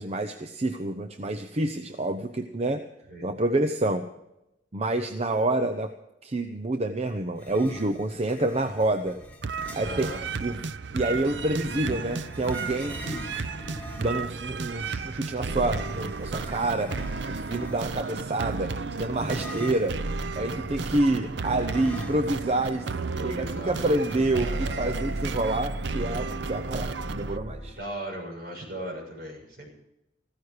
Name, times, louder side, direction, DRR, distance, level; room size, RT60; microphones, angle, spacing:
voice 1, 0.0-2.8 3.2-4.1 4.7-5.9 6.2-9.2 9.7-10.1 10.4-10.6 10.9-13.0 14.0-20.0 20.4-22.9 23.2-27.8, right 2 dB, 35° right, 7 dB, 0.8 m, -28 dB
sound 1, 7.4-10.3 11.1-14.3 15.5-18.1 19.2-20.0 21.7-22.6 22.9-23.0 24.0-24.8, equal, 10° left, 2.0 m, -42 dB
sound 2, 9.4-27.4, right 4 dB, 90° right, 0.6 m, -33 dB
voice 2, 9.8-10.2 22.9-23.8 24.4-24.8 27.7-29.7, right 1 dB, 60° right, 0 dB, 6.6 m, -38 dB
sound 3, 20.5-27.7, equal, 35° left, 6.8 m, -41 dB
15.0 x 14.5 x 4.9 m, 0.88 s
head